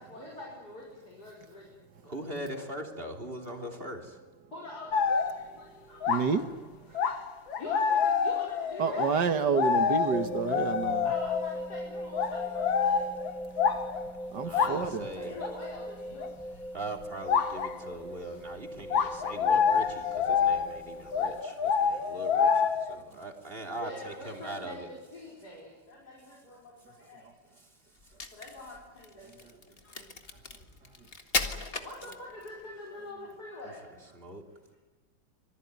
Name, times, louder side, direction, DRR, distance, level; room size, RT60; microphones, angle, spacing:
voice 1, 0.0-1.6 2.1-2.2 4.5-5.0 5.6-6.0 6.3-6.4 7.6-9.0 11.0-13.1 15.2-16.3 23.8-26.0 26.2-26.6 27.1-27.2 28.4-29.3 31.8-33.8, left 1 dB, 50° left, -3 dB, 5.9 m, -44 dB
voice 2, 2.0-4.2 14.4-15.4 16.5-24.9 27.6-27.7 34.1-34.4, right 1 dB, 30° right, 3 dB, 3.4 m, -41 dB
sound 1, 4.9-5.5 6.0-6.4 6.9-11.6 12.1-14.1 14.5-14.9 15.4-15.5 16.2-16.3 17.3-17.7 18.9-22.9, left 6 dB, 80° left, 2.3 m, -27 dB
voice 3, 6.1-6.4 8.8-11.1 14.3-15.1 22.9-23.0, right 5 dB, 60° right, 9 dB, 2.0 m, -29 dB
sound 2, 10.1-21.4, equal, ahead, 0.4 m, -40 dB
Crack, 28.0-32.6, left 3 dB, 30° left, 1.9 m, -36 dB
26.5 x 19.5 x 9.6 m, 1.2 s
omnidirectional pair, 2.1 m